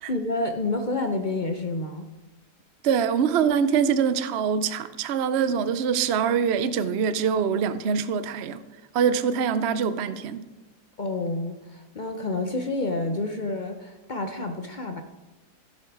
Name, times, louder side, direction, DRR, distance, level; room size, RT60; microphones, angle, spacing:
voice 1, 0.1-2.1 11.0-15.0, left 2 dB, 50° left, 0.6 m, -29 dB
voice 2, 2.8-8.6 8.9-10.5, right 7 dB, 65° right, 0.6 m, -24 dB
15.5 x 6.8 x 4.7 m
omnidirectional pair, 1.7 m